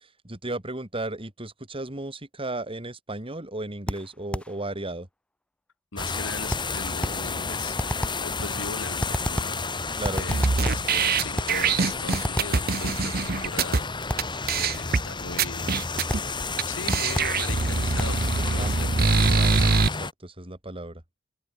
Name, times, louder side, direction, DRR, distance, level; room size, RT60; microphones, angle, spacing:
voice 1, 0.2-5.1 10.0-10.3 18.4-21.0, right 2 dB, 30° right, 3.2 m, -35 dB
sound 1, 3.9-4.6 6.5-7.3 7.8-8.3 9.0-9.6 10.0-10.9 11.4-11.6 12.1-12.6 14.1-14.4 16.1-16.4 16.9-17.4 18.0-18.2, equal, 5° left, 1.0 m, -31 dB
voice 2, 5.9-7.8 8.2-15.8 16.7-18.2 18.5-19.0, left 3 dB, 80° left, 3.6 m, -39 dB
sound 2, 6.0-20.1, left 4 dB, 25° left, 1.9 m, -31 dB
sound 3, 10.3-13.8 14.2-14.3 14.5-15.0 15.4-16.2 16.6-16.7 16.9-19.9, right 4 dB, 50° right, 1.0 m, -23 dB
open air
head